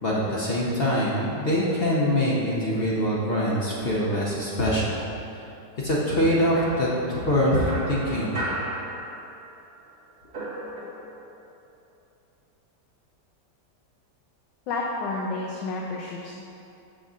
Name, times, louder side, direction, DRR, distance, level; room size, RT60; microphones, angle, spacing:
voice 1, 0.0-5.0 5.3-5.4 5.8-8.5, equal, 45° left, -5 dB, 0.8 m, -24 dB
sound 1, 6.6-9.6 9.8-11.3, right 1 dB, 40° right, 1.2 m, -35 dB
voice 2, 14.7-16.4, left 3 dB, 90° left, -2 dB, 1.4 m, -30 dB
6.3 x 4.0 x 6.1 m, 2.8 s
omnidirectional pair, 1.9 m